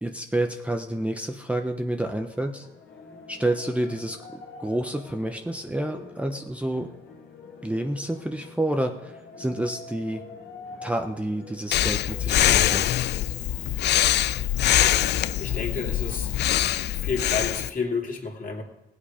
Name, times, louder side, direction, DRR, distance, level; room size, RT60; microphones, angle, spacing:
voice 1, 0.0-2.7 3.3-6.9 7.6-10.2 10.8-12.9, right 1 dB, 5° right, 4 dB, 0.8 m, -29 dB
sound 1, 1.6-18.0, left 4 dB, 85° left, 2.5 m, -46 dB
Breathing, 11.7-17.7, left 12 dB, 60° left, 0.4 m, -23 dB
voice 2, 14.8-16.3 16.9-18.6, left 5 dB, 45° left, 1 dB, 2.6 m, -31 dB
17.0 x 8.5 x 5.1 m, 0.94 s
cardioid pair, 90°, 20 cm